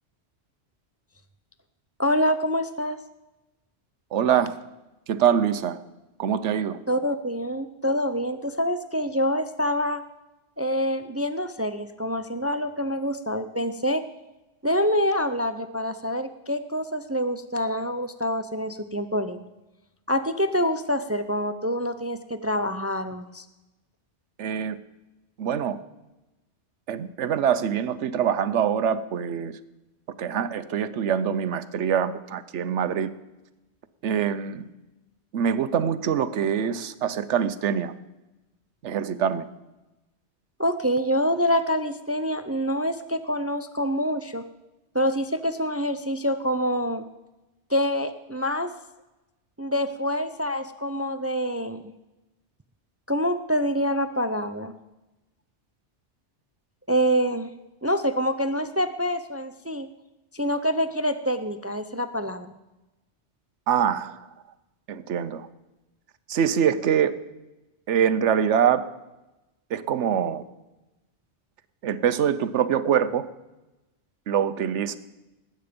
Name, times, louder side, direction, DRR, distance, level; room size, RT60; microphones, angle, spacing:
voice 1, 2.0-3.0 6.9-10.0 10.6-14.0 14.6-19.5 20.1-23.4 40.6-44.4 44.9-47.0 47.7-48.7 49.6-51.8 53.1-54.7 56.9-57.5 57.8-59.9 60.3-62.5, equal, 25° right, 11 dB, 0.3 m, -26 dB
voice 2, 4.1-4.6 5.1-5.8 6.2-6.8 24.4-24.8 25.4-25.8 26.9-29.6 30.2-33.1 34.0-34.6 35.3-37.9 38.8-39.4 63.7-64.2 64.9-65.5 66.3-67.2 67.9-68.9 69.7-70.4 71.8-73.3 74.3-75.0, right 8 dB, 85° right, 13 dB, 1.1 m, -24 dB
19.5 x 8.9 x 5.2 m, 1.0 s
omnidirectional pair, 1.2 m